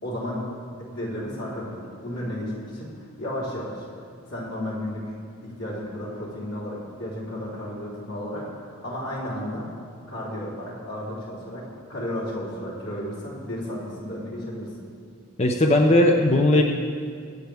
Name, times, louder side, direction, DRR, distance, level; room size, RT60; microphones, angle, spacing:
voice 1, 0.0-3.9 4.3-5.1 5.4-9.7 10.1-14.9, left 1 dB, 90° left, -6 dB, 3.9 m, -33 dB
voice 2, 15.4-16.6, left 1 dB, 30° left, 2 dB, 0.7 m, -18 dB
23.5 x 8.0 x 3.5 m, 2.2 s
head